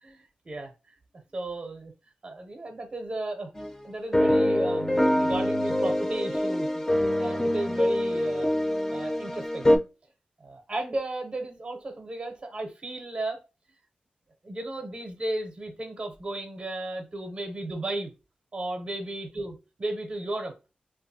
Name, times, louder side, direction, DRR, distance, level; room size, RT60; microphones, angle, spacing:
voice 1, 0.0-0.9 1.3-1.9 2.2-3.5 3.8-6.8 7.2-8.5 8.9-9.8 10.4-13.4 14.4-18.1 18.5-19.5 19.8-20.5, right 2 dB, 35° right, 3 dB, 0.5 m, -34 dB
sound 1, 3.6-3.7 4.1-9.8, left 1 dB, 15° left, 0.4 m, -24 dB
2.9 x 2.3 x 2.6 m, 0.29 s
wide cardioid pair, 140°, 3 cm